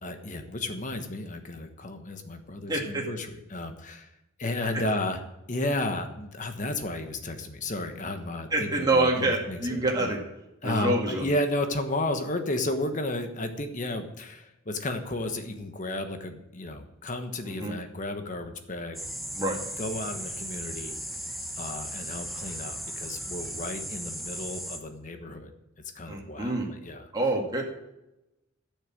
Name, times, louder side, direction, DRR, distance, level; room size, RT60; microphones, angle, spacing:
voice 1, 0.0-4.1 4.4-5.2 5.5-10.1 10.6-19.0 19.8-20.9 21.6-25.5 25.9-27.1, left 1 dB, 40° left, 7 dB, 1.2 m, -33 dB
voice 2, 2.7-3.1 4.7-4.8 8.5-10.2 10.6-11.2 17.5-17.7 19.3-19.6 26.1-26.7 27.1-27.6, right 2 dB, 20° right, -2 dB, 2.1 m, -26 dB
sound 1, 18.9-24.8, equal, ahead, 1.0 m, -37 dB
11.5 x 6.8 x 7.6 m, 0.93 s
head